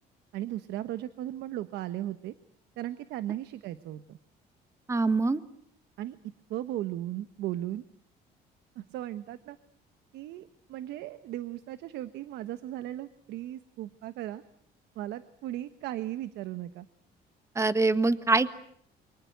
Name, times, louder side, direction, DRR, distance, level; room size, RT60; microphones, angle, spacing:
voice 1, 0.3-2.3 2.8-4.2 6.0-6.2 6.5-7.8 8.7-9.6 10.1-14.4 14.9-16.9, right 13 dB, 80° right, 12 dB, 1.2 m, -36 dB
voice 2, 4.9-5.4 17.5-18.5, right 3 dB, 15° right, 12 dB, 1.5 m, -24 dB
28.5 x 24.5 x 7.9 m, 0.66 s
cardioid pair, 110°, 17 cm